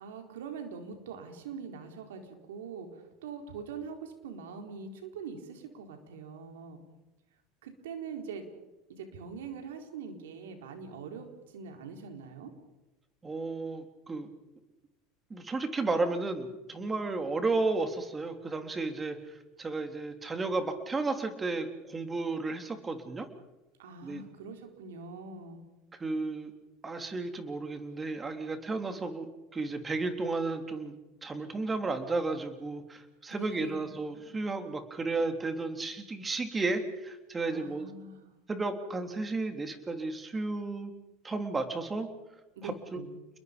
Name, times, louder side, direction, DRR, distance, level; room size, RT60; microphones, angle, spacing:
voice 1, 0.0-6.8 7.6-8.5 9.0-12.5 23.8-25.6 33.3-33.9 37.4-38.3 42.6-43.1, right 5 dB, 80° right, 4 dB, 4.1 m, -43 dB
voice 2, 13.2-14.3 15.3-19.2 19.6-23.3 24.0-24.2 26.0-26.5 26.8-31.0 31.2-37.9 38.5-40.9 41.2-42.1 42.6-43.0, right 3 dB, 20° right, 6 dB, 3.5 m, -33 dB
30.0 x 21.5 x 5.3 m, 1.0 s
hypercardioid pair, 90°, 0 cm